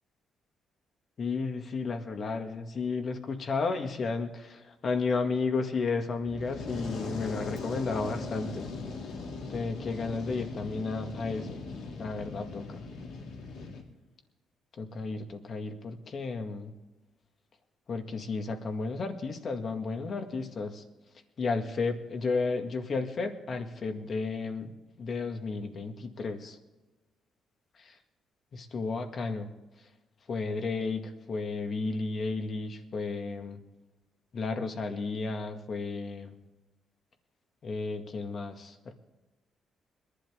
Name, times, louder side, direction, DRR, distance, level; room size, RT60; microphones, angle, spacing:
voice 1, 1.2-8.7 9.5-11.6 12.0-12.8 14.8-16.7 17.9-20.8 21.4-24.7 25.0-26.6 28.5-29.5 30.3-33.6 34.3-36.3 37.6-38.9, left 4 dB, 50° left, 5 dB, 2.0 m, -33 dB
Fire, 6.2-13.8, left 3 dB, 80° left, 2.6 m, -39 dB
22.0 x 12.0 x 3.6 m, 1.1 s
cardioid pair, 90°, 0 cm